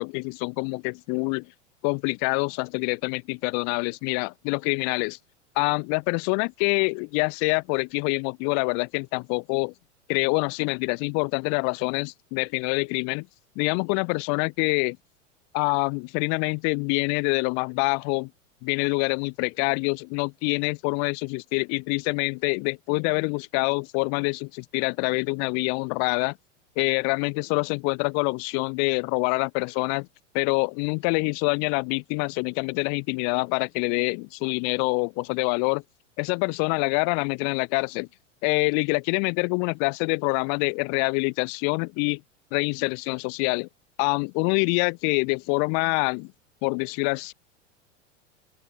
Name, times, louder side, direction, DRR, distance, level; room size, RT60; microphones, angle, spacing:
voice 1, 0.0-1.5 1.8-5.2 5.6-9.7 10.1-13.3 13.6-15.0 15.5-18.3 18.6-26.4 26.8-30.1 30.3-35.8 36.2-38.1 38.4-42.2 42.5-43.7 44.0-46.3 46.6-47.3, left 40 dB or more, 45° left, 1.0 m, -26 dB
open air
hypercardioid pair, 95°, 37 cm